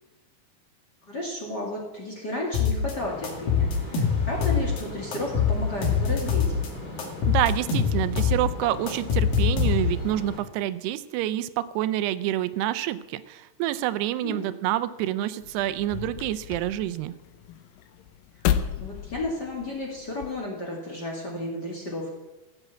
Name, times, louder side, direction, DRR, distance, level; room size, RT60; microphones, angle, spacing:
voice 1, 1.1-6.4 14.2-14.5 18.5-22.1, left 1 dB, 35° left, -1 dB, 2.0 m, -33 dB
sound 1, 2.5-2.9 3.2-4.8 5.1-6.7 7.0-10.1, left 6 dB, 60° left, 3.8 m, -24 dB
sound 2, 2.9-10.4, left 2 dB, 10° left, 3.0 m, -39 dB
voice 2, 7.3-17.1, right 14 dB, 85° right, 14 dB, 2.7 m, -27 dB
sound 3, 15.4-20.4, left 10 dB, 80° left, 2.0 m, -32 dB
15.5 x 8.1 x 8.1 m, 1.1 s
omnidirectional pair, 4.7 m